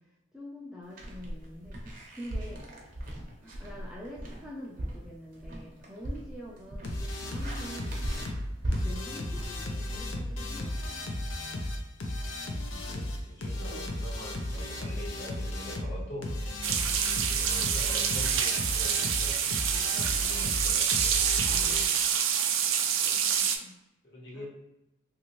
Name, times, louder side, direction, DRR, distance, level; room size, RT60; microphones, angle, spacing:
voice 1, 0.3-2.7 3.4-8.1 8.8-11.0 12.7-13.0 13.6-13.9 16.7-17.0 19.7-20.3 21.5-21.9 23.0-23.8 24.3-24.5, equal, 5° right, -6 dB, 0.4 m, -46 dB
sound 1, 0.9-10.8, right 1 dB, 45° right, 0.6 m, -38 dB
sound 2, 6.8-21.9, left 1 dB, 85° left, 0.6 m, -35 dB
voice 2, 12.9-16.4 17.2-21.8 23.2-23.5 24.0-24.5, equal, 55° left, -5 dB, 1.2 m, -45 dB
sound 3, 16.6-23.6, right 8 dB, 90° right, 0.4 m, -27 dB
3.1 x 2.6 x 2.9 m, 0.93 s
head